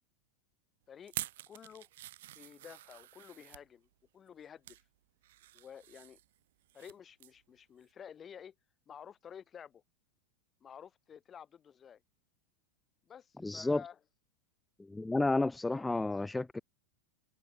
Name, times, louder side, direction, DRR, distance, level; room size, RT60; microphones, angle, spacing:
sound 1, 1.0-3.6 4.3-4.8 5.2-6.9 7.2-7.4 7.8-7.9, right 15 dB, 55° right, 0.6 m, -47 dB
voice 1, 1.5-1.9 2.3-3.9 4.1-4.8 5.5-6.2 6.7-8.5 8.9-9.8 10.6-12.0 13.0-14.0 15.7-15.8, left 8 dB, 25° left, 4.3 m, -52 dB
voice 2, 13.4-13.8 14.9-16.6, left 2 dB, 5° left, 0.7 m, -31 dB
open air
figure-of-eight pair, 90°, 0 cm